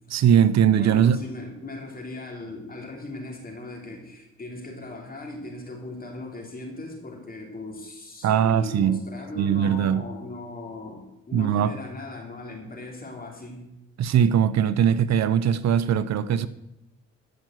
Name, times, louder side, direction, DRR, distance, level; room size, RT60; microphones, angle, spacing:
voice 1, 0.1-1.2 8.2-9.1 9.4-10.1 11.3-11.7 14.0-16.5, right 9 dB, 60° right, 0.7 m, -20 dB
voice 2, 0.8-13.7, left 2 dB, 30° left, 3.2 m, -38 dB
13.5 x 5.9 x 7.8 m
cardioid pair, 90°, 30 cm